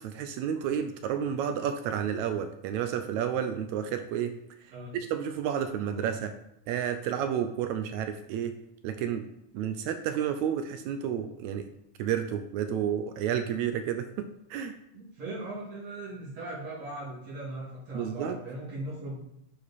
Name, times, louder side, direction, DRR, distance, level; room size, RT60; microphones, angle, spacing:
voice 1, 0.0-4.3 4.9-6.3 6.7-8.5 8.8-9.3 9.5-11.7 12.0-14.7 17.9-18.4, right 9 dB, 80° right, 8 dB, 1.7 m, -31 dB
voice 2, 14.9-19.2, right 1 dB, 55° right, -8 dB, 3.2 m, -39 dB
9.7 x 4.8 x 4.1 m, 0.81 s
omnidirectional pair, 3.7 m